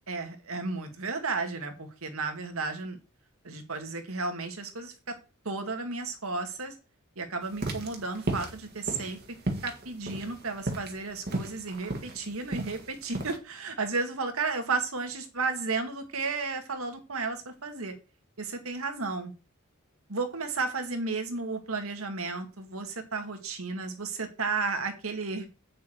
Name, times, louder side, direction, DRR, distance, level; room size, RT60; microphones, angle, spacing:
voice 1, 0.1-3.0 3.4-4.9 5.5-6.7 7.2-9.2 9.6-17.9 18.4-19.3 20.1-25.5, right 4 dB, 75° right, 5 dB, 2.1 m, -33 dB
sound 1, 7.5-13.4, right 2 dB, 50° right, 1.8 m, -34 dB
8.6 x 7.0 x 4.7 m, 0.31 s
head